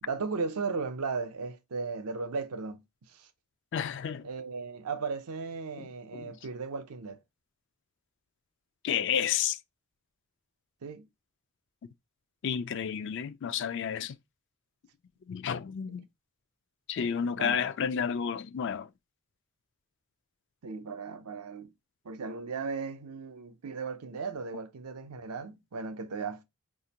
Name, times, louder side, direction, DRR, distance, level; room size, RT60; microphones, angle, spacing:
voice 1, 0.0-3.3 4.2-7.2 10.8-11.1 15.9-16.1 17.4-17.7 20.6-21.7 22.0-26.4, right 4 dB, 80° right, 0.6 m, -36 dB
voice 2, 3.7-4.3 5.8-5.9 6.1-6.3 8.8-9.6 12.4-14.1 15.3-16.1 16.9-18.9, left 8 dB, 55° left, 0.3 m, -31 dB
5.0 x 2.5 x 2.8 m
head